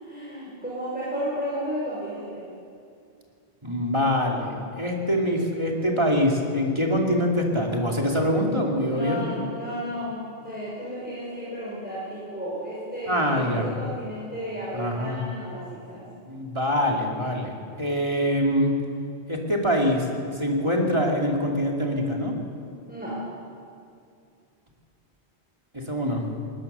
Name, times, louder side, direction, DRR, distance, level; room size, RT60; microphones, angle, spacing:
voice 1, 0.0-2.5 8.8-16.0 22.9-23.2, equal, 10° right, -8 dB, 5.3 m, -33 dB
voice 2, 3.6-9.3 13.1-13.7 14.7-15.2 16.3-18.7 19.3-20.1 20.3-22.3 25.7-26.3, equal, 25° right, 0 dB, 2.7 m, -24 dB
19.5 x 19.0 x 6.9 m, 2.4 s
omnidirectional pair, 1.1 m